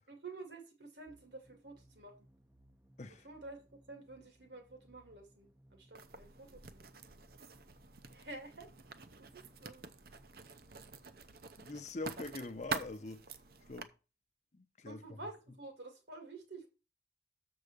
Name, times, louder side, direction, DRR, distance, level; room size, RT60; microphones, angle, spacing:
voice 1, 0.1-2.3 3.1-7.0 8.1-9.8 14.8-16.7, right 2 dB, 75° right, 2.2 m, -51 dB
sound 1, 1.1-11.3, right 1 dB, 10° right, 0.5 m, -66 dB
Writing, 5.9-13.8, right 5 dB, 55° right, 0.7 m, -47 dB
voice 2, 11.6-13.2 13.7-13.9 14.5-15.0, left 2 dB, 40° left, 0.7 m, -43 dB
7.0 x 4.8 x 6.7 m
head